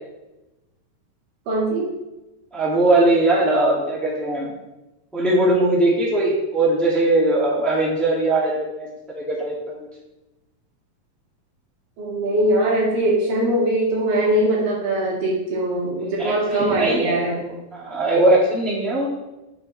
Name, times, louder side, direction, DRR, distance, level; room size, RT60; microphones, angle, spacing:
voice 1, 1.5-1.9 12.0-17.5, right 1 dB, 80° right, -5 dB, 4.0 m, -21 dB
voice 2, 2.5-4.5 5.1-9.7 16.2-19.1, right 2 dB, ahead, -6 dB, 1.6 m, -20 dB
9.8 x 6.9 x 3.3 m, 0.99 s
omnidirectional pair, 3.9 m